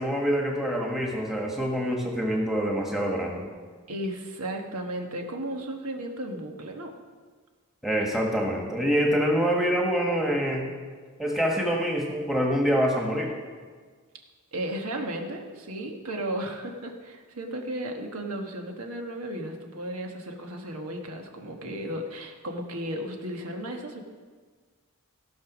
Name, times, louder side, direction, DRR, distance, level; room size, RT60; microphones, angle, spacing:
voice 1, 0.0-3.5 7.8-10.7 11.2-13.3, equal, ahead, -1 dB, 1.5 m, -26 dB
voice 2, 3.9-7.0 14.5-24.0, right 1 dB, 85° right, 3 dB, 1.4 m, -34 dB
16.5 x 5.7 x 6.1 m, 1.5 s
head